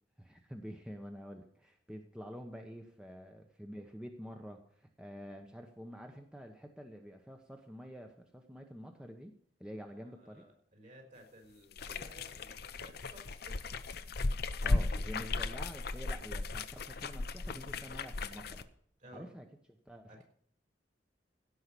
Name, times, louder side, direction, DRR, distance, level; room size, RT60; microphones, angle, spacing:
voice 1, 0.2-9.3 9.6-10.4 14.6-18.7 19.1-20.2, equal, 5° right, 3 dB, 0.9 m, -48 dB
voice 2, 9.8-13.7 19.0-19.3 20.1-20.2, equal, 45° right, 3 dB, 4.1 m, -56 dB
sound 1, 11.7-18.6, left 3 dB, 60° left, 0.8 m, -36 dB
16.5 x 5.6 x 8.2 m, 0.63 s
head